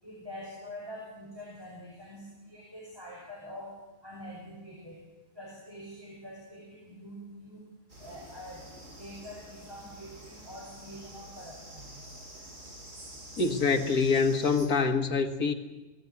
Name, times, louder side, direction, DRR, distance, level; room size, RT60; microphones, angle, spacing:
voice 1, 0.0-3.8 4.0-5.0 5.3-7.7 8.0-12.0, equal, 15° right, 5.3 m, -45 dB
sound 1, 7.9-14.7, right 1 dB, 55° right, 5.8 m, -48 dB
voice 2, 13.4-15.5, left 4 dB, 75° left, 2.3 m, -25 dB
22.0 x 17.5 x 9.8 m
omnidirectional pair, 1.6 m